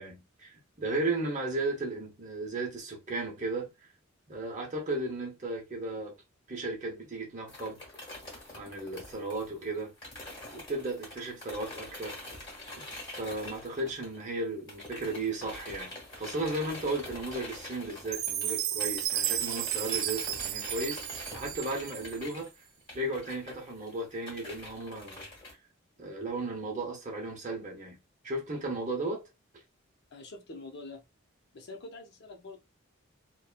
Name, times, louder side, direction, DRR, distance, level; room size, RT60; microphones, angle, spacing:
voice 1, 0.0-3.7 4.3-6.1 6.5-7.8 8.5-9.9 10.5-12.2 13.1-21.0 21.3-22.5 22.9-25.3 26.0-28.0 28.2-29.2, right 2 dB, 35° right, 0.9 m, -35 dB
sound 1, 7.5-14.4 14.7-25.5, left 1 dB, 20° left, 1.3 m, -45 dB
Chime, 18.1-22.3, right 12 dB, 75° right, 0.3 m, -33 dB
voice 2, 30.1-31.0 31.5-32.6, left 2 dB, 55° left, 0.6 m, -45 dB
2.8 x 2.2 x 2.3 m
head